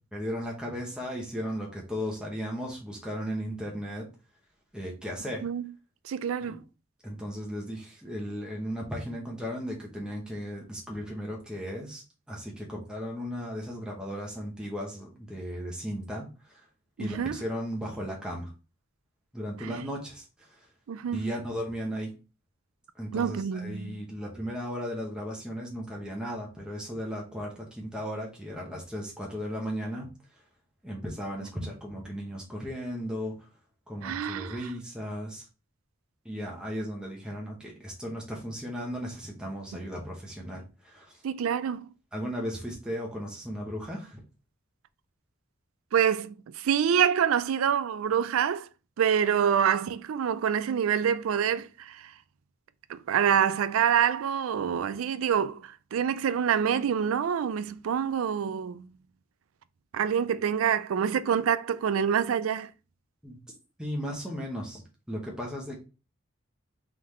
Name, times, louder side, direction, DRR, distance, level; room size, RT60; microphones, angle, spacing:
voice 1, 0.1-4.1 4.7-5.4 6.4-6.6 7.0-16.7 17.0-18.5 19.3-20.7 21.1-22.1 22.9-30.1 30.8-33.4 33.9-35.5 36.2-41.2 42.1-44.2 63.2-63.4 63.8-65.8, equal, 5° right, 1.0 m, -36 dB
voice 2, 6.0-6.6 17.0-17.4 19.6-19.9 20.9-21.2 23.1-24.0 31.6-31.7 34.0-34.6 41.2-41.9 45.9-48.7 49.0-52.1 52.9-58.9 59.9-62.7, right 8 dB, 90° right, 0.4 m, -26 dB
3.8 x 3.5 x 3.1 m
head